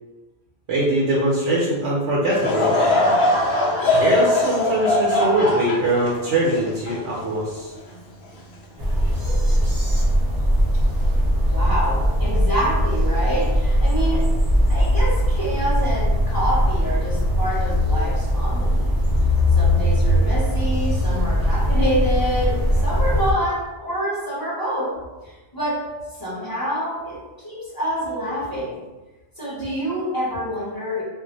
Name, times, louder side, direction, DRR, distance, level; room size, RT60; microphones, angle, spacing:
voice 1, 0.7-2.7 4.0-7.7, right 1 dB, 90° right, -5 dB, 1.0 m, -22 dB
Laughter / Crowd, 2.3-7.8 8.3-8.4 9.3-9.5, left 2 dB, 70° left, 0.8 m, -21 dB
sound 1, 8.8-23.3, equal, 25° right, 0.5 m, -20 dB
voice 2, 11.5-14.3 14.7-18.8 19.5-24.9 25.2-25.9 26.2-28.8 29.4-31.0, equal, 20° left, -8 dB, 0.8 m, -27 dB
2.5 x 2.1 x 3.9 m, 1.2 s
omnidirectional pair, 1.2 m